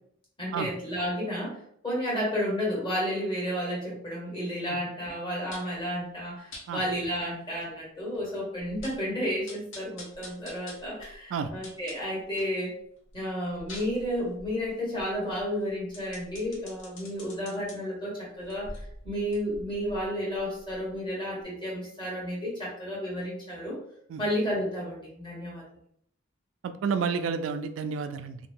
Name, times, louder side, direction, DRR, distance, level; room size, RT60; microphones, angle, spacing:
voice 1, 0.4-1.6 1.8-12.7 13.1-23.8 24.2-25.6, equal, 25° left, -6 dB, 1.4 m, -32 dB
sound 1, 5.5-5.8 6.5-6.7 7.2-7.3 7.6-7.7 8.1-8.2 8.6-9.1 9.5-12.6 13.0-17.7 18.4-21.1 21.4-21.5, left 1 dB, 85° left, 0.8 m, -46 dB
voice 2, 26.6-28.4, right 5 dB, 90° right, 9 dB, 0.3 m, -30 dB
2.7 x 2.2 x 3.5 m, 0.68 s
head